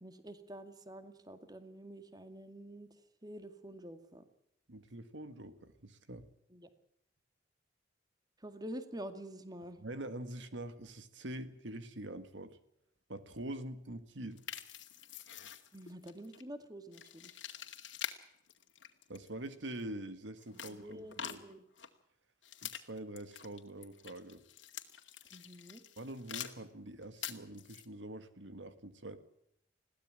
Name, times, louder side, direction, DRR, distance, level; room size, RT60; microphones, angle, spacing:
voice 1, 0.0-3.0 3.2-4.3 6.5-6.7 8.4-9.8 15.7-17.4 20.5-21.7 25.3-25.8, right 1 dB, 20° right, 9 dB, 2.1 m, -48 dB
voice 2, 4.7-6.2 9.8-12.6 13.1-14.4 19.1-21.4 22.6-24.4 26.0-29.2, right 1 dB, 80° right, 11 dB, 1.8 m, -45 dB
sound 1, 14.4-16.4 16.9-18.2 18.5-19.8 20.4-21.9 22.4-26.6 26.9-27.9, left 10 dB, 85° left, 2.2 m, -46 dB
21.5 x 16.5 x 7.5 m, 0.78 s
head